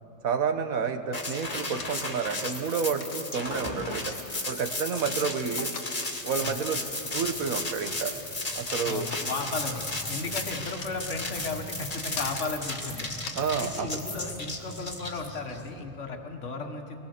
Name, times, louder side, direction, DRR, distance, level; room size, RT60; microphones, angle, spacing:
voice 1, 0.2-4.1 4.5-5.8 6.2-6.8 7.1-8.1 8.6-9.1 13.3-13.9, right 6 dB, 75° right, 7 dB, 1.6 m, -30 dB
sound 1, 1.1-15.6, left 2 dB, 25° left, 2.0 m, -34 dB
sound 2, 1.7-13.8, left 6 dB, 80° left, 1.5 m, -44 dB
sound 3, 6.0-15.9, right 1 dB, 15° right, 1.7 m, -47 dB
voice 2, 8.8-9.8 10.1-13.2 13.6-17.0, left 3 dB, 55° left, 4 dB, 1.9 m, -35 dB
23.5 x 20.5 x 6.7 m, 2.8 s
omnidirectional pair, 1.5 m